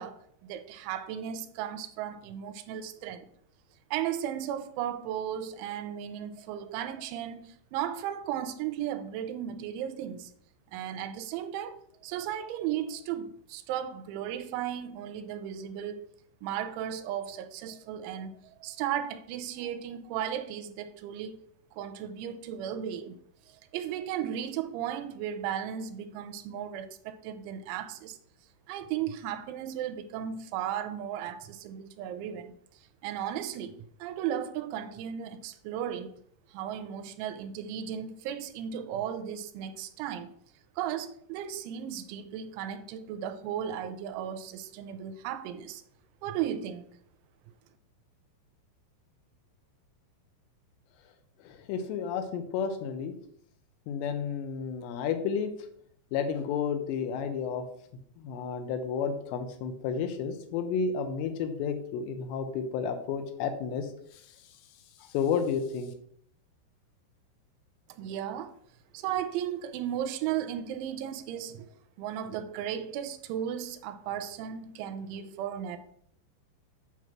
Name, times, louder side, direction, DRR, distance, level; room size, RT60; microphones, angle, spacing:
voice 1, 0.0-3.3 3.9-10.3 10.7-16.1 16.4-21.4 21.7-23.2 23.5-28.2 28.7-32.5 33.0-36.1 36.5-40.3 40.8-45.8 46.2-46.8 68.0-68.5 68.9-71.7 72.0-75.8, right 10 dB, 85° right, 2.9 m, -35 dB
voice 2, 51.5-53.1 53.9-55.5 56.1-57.6 58.2-63.9 65.1-65.9, left 6 dB, 80° left, 2.6 m, -31 dB
8.3 x 3.0 x 5.8 m
omnidirectional pair, 5.4 m